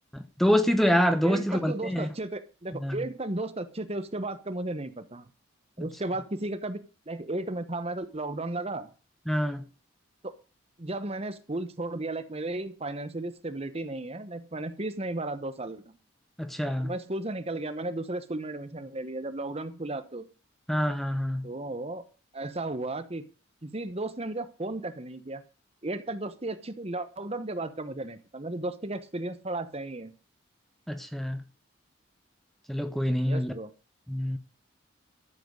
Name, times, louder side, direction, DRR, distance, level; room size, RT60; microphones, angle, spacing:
voice 1, 0.1-2.1 2.8-3.0 9.3-9.6 16.4-16.9 20.7-21.5 30.9-31.4 32.7-33.5 34.1-34.4, equal, ahead, 0.9 m, -26 dB
voice 2, 1.2-5.3 5.8-6.8 7.1-8.9 10.2-10.3 10.8-15.8 16.8-20.2 21.4-22.0 22.3-23.3 23.6-25.4 25.8-30.1 33.2-33.7, right 2 dB, 30° right, 1.1 m, -34 dB
13.0 x 7.9 x 6.5 m
head